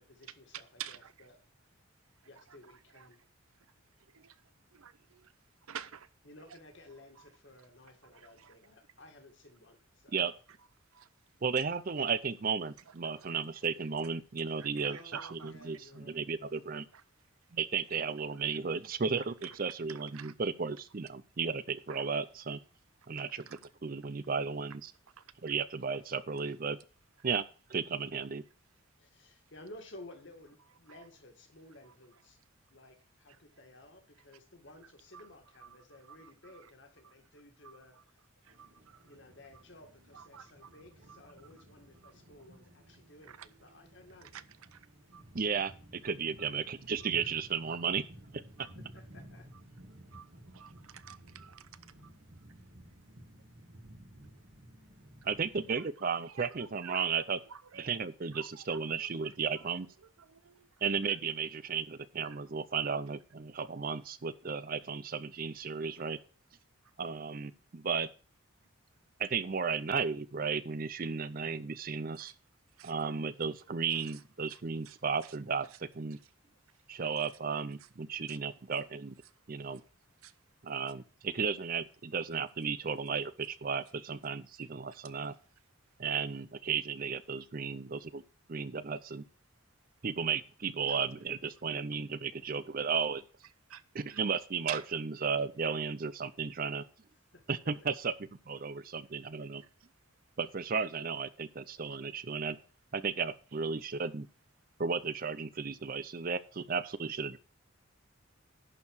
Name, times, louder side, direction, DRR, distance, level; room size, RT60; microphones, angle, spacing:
voice 1, 0.0-1.4 1.7-1.9 2.2-3.2 6.3-10.2 14.8-16.4 29.0-32.4 32.7-38.3 39.0-44.3 48.8-49.5 97.3-97.4, left 1 dB, 55° left, 1.9 m, -55 dB
voice 2, 0.5-1.3 2.2-3.1 3.5-3.7 4.0-5.3 5.6-6.1 6.5-6.6 7.2-7.3 8.0-8.6 10.9-11.1 11.6-11.7 12.9-13.3 14.6-15.5 16.9-17.0 18.5-18.6 19.4-19.6 19.9-20.3 21.9-22.1 23.1-23.6 25.2-25.3 30.9-31.0 31.9-32.0 34.8-34.9 35.1-35.3 35.6-35.8 36.0-36.7 37.0-37.1 37.6-38.0 38.4-39.1 40.1-41.3 42.0-42.1 43.2-43.5 44.2-44.4 44.7-44.9 45.1-45.2 45.6-45.7 48.6-48.7 50.1-51.7 52.0-52.1 55.7-57.2 57.4-57.8 58.3-59.7 60.0-60.8 61.1-61.2 62.2-62.4 66.8-66.9 72.2-72.3 72.7-72.9 73.9-74.2 74.5-75.0 75.2-75.4 75.7-75.8 76.2-76.3 76.7-76.8 77.8-77.9 78.3-78.4 79.2-79.3 79.7-79.8 80.2-80.4 93.7-93.8 94.1-94.2 94.7-94.8 99.6-99.7, right 9 dB, 85° right, 0.7 m, -50 dB
voice 3, 11.4-16.9 17.5-22.6 23.1-23.4 23.8-24.9 25.4-26.8 27.2-27.4 27.7-28.4 45.3-48.0 48.3-48.7 55.2-57.4 57.8-59.9 60.8-66.2 67.0-68.1 69.2-72.3 72.8-76.2 76.9-79.2 79.5-79.8 80.6-85.3 86.0-88.2 88.5-89.2 90.0-93.2 93.9-96.8 97.5-98.1 98.5-99.6 100.4-102.6 102.9-104.3 104.8-107.4, right 5 dB, 40° right, 0.5 m, -34 dB
sound 1, 38.5-55.8, right 1 dB, 60° right, 2.0 m, -55 dB
11.0 x 4.6 x 6.4 m
head